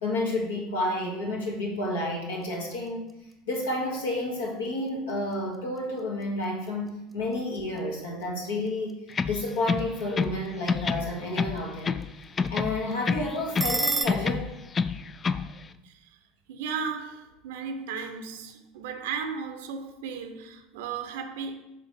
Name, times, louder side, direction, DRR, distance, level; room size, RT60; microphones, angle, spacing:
voice 1, 0.0-3.1 3.5-6.8 7.1-8.9 9.3-12.0 12.5-14.5, left 1 dB, 70° left, 1.6 m, -30 dB
sound 1, 2.3-14.0, right 2 dB, 5° right, 0.9 m, -39 dB
sound 2, 9.1-10.4 10.7-12.1 12.4-13.8 14.1-15.5, left 5 dB, 25° left, 0.3 m, -28 dB
voice 2, 16.5-21.5, right 6 dB, 65° right, 0.6 m, -35 dB
7.1 x 3.9 x 4.3 m
figure-of-eight pair, 70°, 0 cm